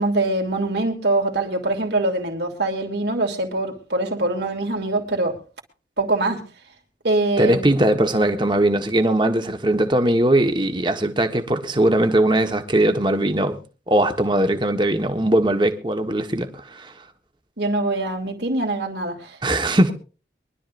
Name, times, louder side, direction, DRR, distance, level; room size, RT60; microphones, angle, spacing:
voice 1, 0.0-5.4 6.0-6.4 7.0-7.7 17.6-19.4, right 2 dB, 70° right, 3.0 m, -23 dB
voice 2, 7.4-13.6 13.9-16.9 19.4-19.9, right 1 dB, 25° right, 1.4 m, -20 dB
23.5 x 12.0 x 2.6 m
head